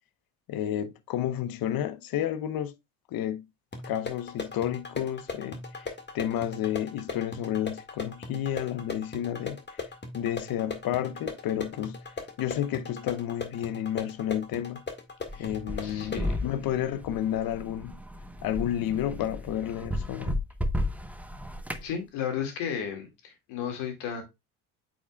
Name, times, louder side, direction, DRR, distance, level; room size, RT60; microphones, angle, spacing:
voice 1, 0.5-2.8 3.1-3.5 3.9-9.9 10.1-14.8 15.4-18.0 18.4-20.4, left 11 dB, 55° left, 0.9 m, -31 dB
sound 1, 3.7-16.3, left 3 dB, 25° left, 1.8 m, -39 dB
sound 2, 15.3-21.9, left 1 dB, 5° right, 0.9 m, -34 dB
voice 2, 15.8-16.3 21.8-24.2, left 8 dB, 70° left, 2.2 m, -34 dB
8.0 x 5.3 x 2.3 m
hypercardioid pair, 65°, 43 cm